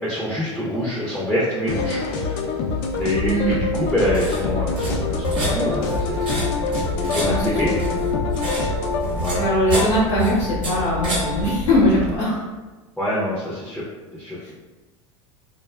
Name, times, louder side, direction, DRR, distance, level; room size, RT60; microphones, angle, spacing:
voice 1, 0.0-2.4 3.0-6.5 6.9-7.7 9.2-9.4 13.0-13.8 14.1-14.5, left 1 dB, ahead, -7 dB, 0.6 m, -26 dB
sound 1, 1.7-9.1, left 4 dB, 55° left, 0.4 m, -26 dB
sound 2, 2.9-12.2, equal, 30° right, 1.0 m, -28 dB
voice 2, 3.2-3.6 7.0-7.7 9.3-12.4 14.4-14.5, equal, 80° left, -7 dB, 0.8 m, -21 dB
sound 3, 5.8-11.6, left 4 dB, 65° right, 0.6 m, -35 dB
2.6 x 2.3 x 2.2 m, 1.2 s
hypercardioid pair, 90°, 16 cm